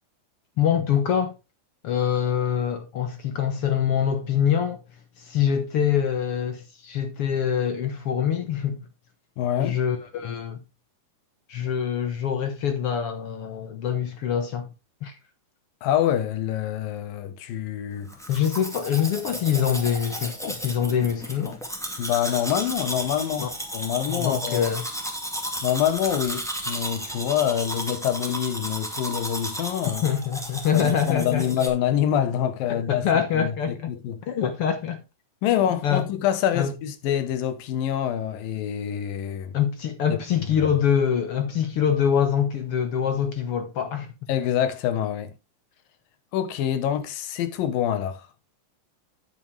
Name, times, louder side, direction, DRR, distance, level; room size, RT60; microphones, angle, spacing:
voice 1, 0.6-1.3 1.8-4.8 5.2-8.8 9.6-10.6 11.5-14.7 15.0-15.1 18.3-21.6 23.4-23.5 24.1-24.8 29.8-31.5 32.7-33.9 34.3-35.0 35.8-36.0 36.5-36.7 39.5-44.1, left 8 dB, 60° left, 1.6 m, -24 dB
voice 2, 9.4-9.8 15.8-18.1 22.0-23.5 23.7-24.7 25.6-30.0 30.7-33.0 33.3-34.2 35.4-39.5 40.4-40.7 44.3-45.3 46.3-48.3, left 10 dB, 85° left, 2.9 m, -26 dB
Domestic sounds home sounds, 18.1-31.7, equal, ahead, 1.3 m, -34 dB
9.4 x 9.1 x 3.4 m
omnidirectional pair, 3.9 m